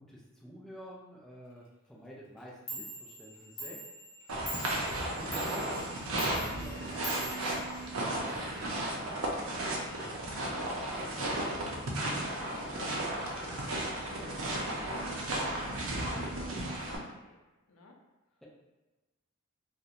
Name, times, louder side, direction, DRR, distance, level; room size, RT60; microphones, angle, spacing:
voice 1, 0.0-3.8 4.7-8.7 9.2-9.8, equal, ahead, -5 dB, 0.4 m, -51 dB
Clock, 2.4-2.5 2.7-8.3, right 1 dB, 40° left, 0.7 m, -44 dB
sound 1, 4.3-17.0, right 1 dB, 75° right, 0.5 m, -34 dB
sound 2, 6.6-12.5, equal, 25° right, 1.1 m, -53 dB
voice 2, 10.3-11.5 12.1-13.1 13.9-15.0 15.3-15.5 16.0-17.4 17.7-18.0, left 2 dB, 85° left, 1 dB, 0.4 m, -53 dB
2.4 x 2.1 x 2.8 m, 1.1 s
head